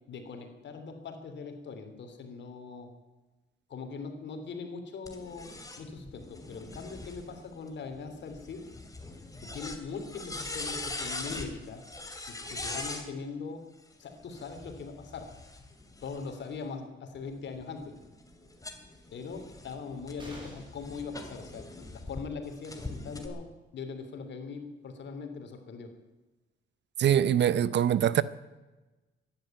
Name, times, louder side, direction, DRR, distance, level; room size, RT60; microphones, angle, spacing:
voice 1, 0.1-2.9 3.7-5.5 5.8-8.6 9.4-11.8 12.3-13.7 14.0-15.3 16.0-17.9 19.1-25.9, left 5 dB, 65° left, 3.1 m, -41 dB
sound 1, 5.1-13.1 14.2-16.6 17.1-22.2 22.6-23.3, left 2 dB, 15° left, 2.8 m, -42 dB
sound 2, 20.2-20.9 22.9-23.0 23.3-23.4, right 1 dB, 25° right, 6.6 m, -47 dB
voice 2, 27.0-28.2, right 10 dB, 60° right, 0.8 m, -23 dB
14.5 x 10.5 x 9.2 m
cardioid pair, 90°, 20 cm